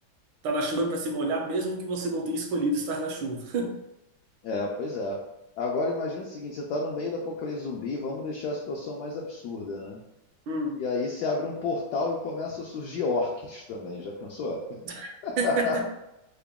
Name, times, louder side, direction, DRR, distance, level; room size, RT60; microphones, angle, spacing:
voice 1, 0.4-3.8 10.5-10.8 14.8-15.8, right 2 dB, 80° right, 2 dB, 1.4 m, -29 dB
voice 2, 4.4-5.2 5.6-10.0 10.8-14.8 15.2-15.9, left 3 dB, 75° left, -2 dB, 0.9 m, -31 dB
3.8 x 2.1 x 3.4 m, 0.89 s
omnidirectional pair, 2.2 m